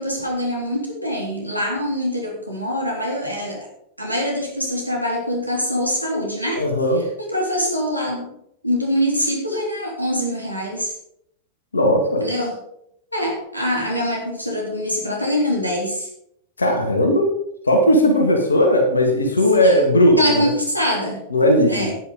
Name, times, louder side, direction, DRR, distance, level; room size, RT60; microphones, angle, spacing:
voice 1, 0.0-3.7 4.0-6.6 7.0-8.3 8.6-10.9 12.2-12.5 13.1-16.1 19.5-19.9 20.2-21.2 21.7-21.9, equal, 90° right, -1 dB, 3.3 m, -24 dB
voice 2, 6.6-7.0 11.7-12.2 16.6-17.3 17.7-20.5 21.3-21.9, left 1 dB, 75° left, 2 dB, 1.9 m, -17 dB
11.0 x 9.9 x 5.1 m, 0.73 s
figure-of-eight pair, 90°, 0 cm